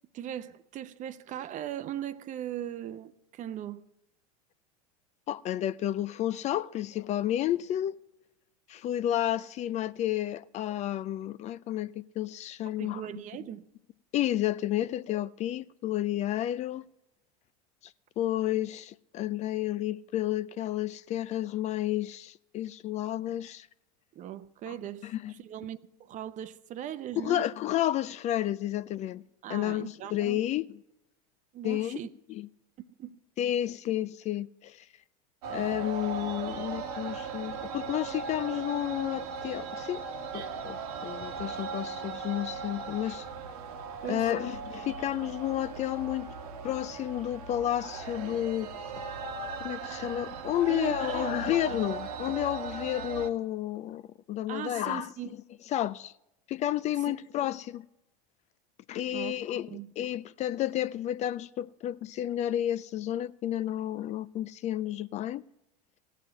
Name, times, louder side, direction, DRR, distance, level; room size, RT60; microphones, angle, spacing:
voice 1, 0.1-3.8 12.8-13.7 24.1-27.5 29.4-30.4 31.5-32.1 33.0-33.2 44.0-44.5 50.7-51.5 54.5-55.3 57.1-57.2 59.1-59.3 59.7-59.9, right 11 dB, 40° right, 0.7 m, -39 dB
voice 2, 5.3-8.0 8.7-13.0 14.1-16.8 17.8-23.7 24.7-24.8 25.0-25.3 27.2-29.2 29.5-30.7 31.6-32.0 32.3-32.5 33.4-34.8 35.5-40.0 40.3-40.8 41.0-43.3 44.1-46.3 46.6-48.7 49.6-54.0 54.3-55.1 55.7-56.1 56.5-57.8 58.9-65.4, left 12 dB, 35° left, 0.4 m, -31 dB
sound 1, 35.4-53.3, right 5 dB, 70° right, 1.3 m, -38 dB
16.5 x 5.7 x 9.0 m
hypercardioid pair, 90°, 20 cm